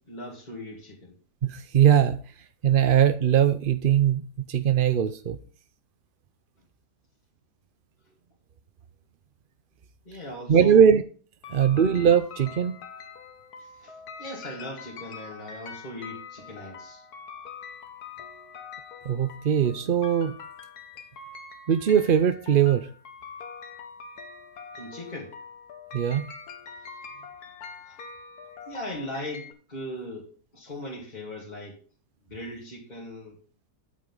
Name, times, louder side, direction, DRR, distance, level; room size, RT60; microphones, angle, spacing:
voice 1, 0.1-1.2 10.1-10.9 13.6-17.0 24.7-25.3 27.8-28.0 28.7-31.8 32.3-33.4, left 1 dB, 25° left, 2.8 m, -39 dB
voice 2, 1.4-2.2 2.6-5.4 10.5-11.0 11.5-12.8 19.1-20.3 21.7-22.9 25.9-26.2, right 8 dB, 60° right, 0.5 m, -21 dB
sound 1, 11.4-29.5, left 5 dB, 70° left, 1.8 m, -44 dB
8.9 x 8.7 x 3.9 m
omnidirectional pair, 1.7 m